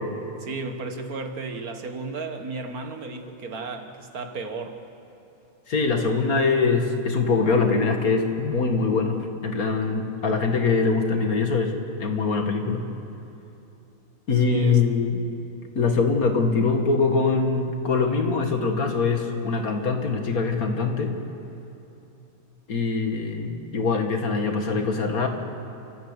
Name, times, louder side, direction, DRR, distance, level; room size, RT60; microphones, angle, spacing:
voice 1, 0.3-4.8 14.3-14.8, right 3 dB, 90° right, 6 dB, 2.1 m, -34 dB
voice 2, 5.7-11.7 12.0-12.8 14.3-15.2 15.8-21.1 22.7-25.3, left 4 dB, 80° left, 4 dB, 2.4 m, -23 dB
29.0 x 14.5 x 8.1 m, 2.8 s
omnidirectional pair, 1.5 m